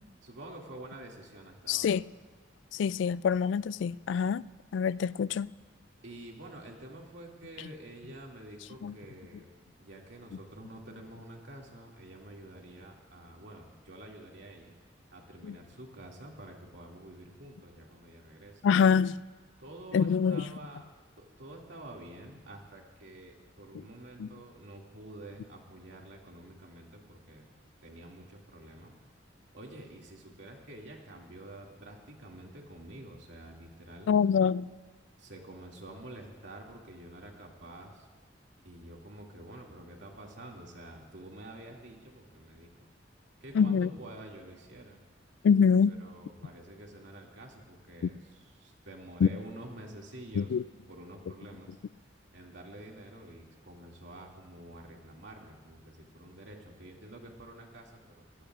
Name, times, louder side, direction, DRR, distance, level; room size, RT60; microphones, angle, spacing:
voice 1, 0.2-1.9 6.0-9.5 9.8-14.7 15.1-18.6 19.6-20.9 21.2-27.5 27.8-28.9 29.5-34.1 35.2-38.0 38.6-42.9 43.4-45.0 45.9-50.5 50.9-51.8 52.3-58.5, right 1 dB, 75° right, 2.3 m, -48 dB
voice 2, 1.7-2.0 2.7-4.4 4.7-5.5 8.8-8.9 15.4-15.6 18.6-19.2 19.9-20.5 23.7-23.8 24.2-24.3 34.1-34.7 43.5-43.9 45.4-46.0 48.0-48.1 49.2-49.3 50.3-50.6, left 6 dB, 75° left, 0.3 m, -25 dB
24.0 x 17.0 x 2.5 m
head